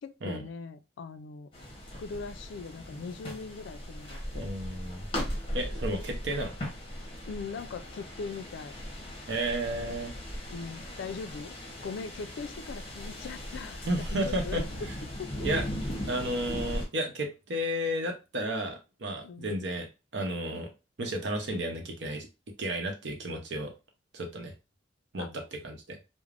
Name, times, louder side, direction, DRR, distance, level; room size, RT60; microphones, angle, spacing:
voice 1, 0.0-1.5 2.0-4.5 7.3-8.8 10.5-11.6 11.8-14.9 15.2-15.3 19.2-19.6 25.2-25.4, left 5 dB, 70° left, 0.3 m, -40 dB
sound 1, 1.5-16.9, equal, 30° left, 0.9 m, -38 dB
voice 2, 4.3-5.1 5.5-6.6 9.3-10.1 13.9-14.6 15.4-15.6 16.1-19.9 20.1-20.7 21.0-22.3 22.6-23.7 24.1-24.5 25.1-26.0, right 1 dB, 65° right, 0.7 m, -32 dB
3.3 x 2.0 x 2.4 m
head